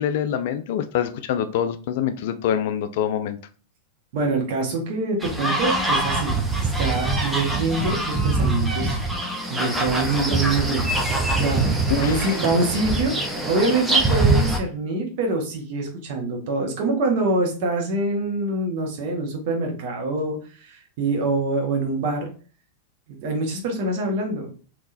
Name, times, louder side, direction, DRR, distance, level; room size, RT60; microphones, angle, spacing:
voice 1, 0.0-3.4 11.9-12.4, left 9 dB, 50° left, 0.3 m, -25 dB
voice 2, 4.1-9.0 9.5-11.0 11.4-13.1 13.5-22.3 23.1-24.5, right 2 dB, 50° right, 1.1 m, -25 dB
sound 1, 5.2-14.6, right 2 dB, 10° right, 0.7 m, -23 dB
3.7 x 2.9 x 2.6 m
figure-of-eight pair, 90°, 0 cm